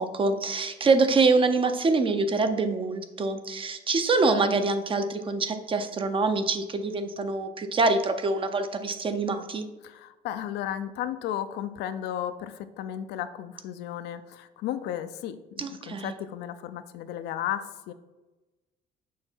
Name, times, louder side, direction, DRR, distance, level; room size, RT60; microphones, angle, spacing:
voice 1, 0.0-9.7 15.6-16.1, right 3 dB, 30° right, 8 dB, 0.6 m, -25 dB
voice 2, 9.8-17.9, left 10 dB, 80° left, 11 dB, 0.5 m, -34 dB
6.5 x 3.9 x 4.4 m, 1.1 s
cardioid pair, 110°, 17 cm